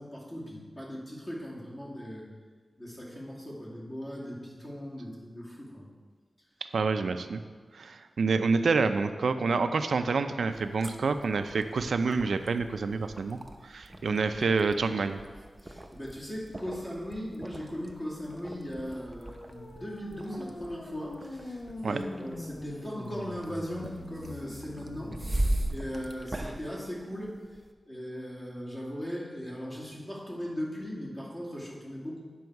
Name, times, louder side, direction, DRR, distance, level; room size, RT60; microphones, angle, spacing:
voice 1, 0.0-2.3 2.8-5.9 13.9-14.2 15.6-27.4 27.9-32.2, equal, 30° left, -6 dB, 2.4 m, -39 dB
voice 2, 6.7-7.4 7.7-13.4 13.6-15.2 21.8-22.0, right 4 dB, 85° right, 8 dB, 0.4 m, -28 dB
sound 1, 10.5-27.7, right 1 dB, 20° right, 0.6 m, -39 dB
sound 2, 19.0-26.1, left 2 dB, 70° left, 1.0 m, -43 dB
9.4 x 6.2 x 4.6 m, 1.5 s
wide cardioid pair, 125°, 0 cm